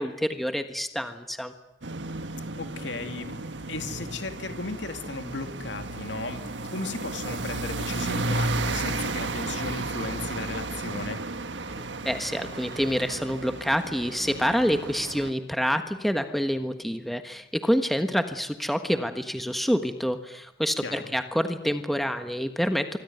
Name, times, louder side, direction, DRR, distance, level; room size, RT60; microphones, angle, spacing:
voice 1, 0.0-1.5 11.7-23.0, equal, ahead, 7 dB, 1.4 m, -27 dB
sound 1, 1.8-15.3, right 2 dB, 85° right, 1.7 m, -33 dB
voice 2, 2.6-11.2 20.8-21.1, left 3 dB, 85° left, 7 dB, 2.7 m, -36 dB
25.0 x 24.5 x 9.4 m, 0.87 s
head